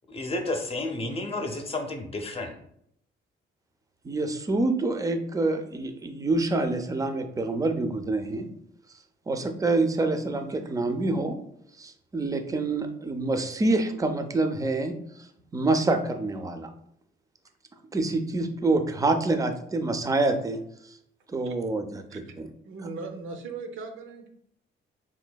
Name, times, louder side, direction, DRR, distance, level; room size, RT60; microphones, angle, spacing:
voice 1, 0.1-2.6, left 2 dB, 30° left, 4 dB, 0.6 m, -31 dB
voice 2, 4.0-8.5 9.3-11.4 11.8-14.9 15.5-16.7 17.9-20.6 21.3-22.5, right 2 dB, 15° right, 7 dB, 0.4 m, -26 dB
voice 3, 22.6-24.3, right 4 dB, 80° right, 5 dB, 0.6 m, -38 dB
4.0 x 2.6 x 2.2 m, 0.72 s
cardioid pair, 90°, 20 cm